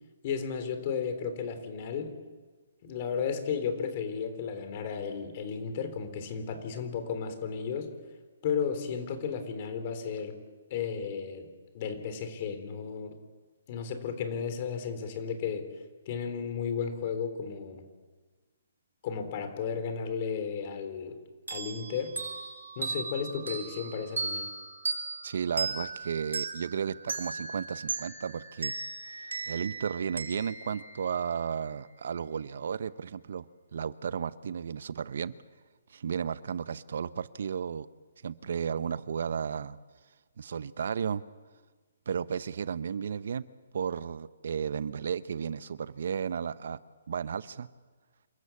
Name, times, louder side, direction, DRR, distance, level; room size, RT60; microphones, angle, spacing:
voice 1, 0.2-2.1 2.8-7.9 8.4-10.4 10.7-11.5 11.7-13.1 13.7-15.7 16.1-17.9 19.0-21.1 21.5-22.2 22.8-24.5, left 6 dB, 40° left, 8 dB, 3.5 m, -34 dB
sound 1, 21.5-31.7, right 4 dB, 90° right, 4.0 m, -37 dB
voice 2, 25.2-28.7 29.0-33.5 33.7-35.3 35.9-37.9 38.2-39.8 40.4-41.2 42.1-43.4 43.7-46.8 47.1-47.7, right 7 dB, 65° right, 16 dB, 0.8 m, -33 dB
27.5 x 14.0 x 8.5 m, 1.4 s
hypercardioid pair, 150°, 0 cm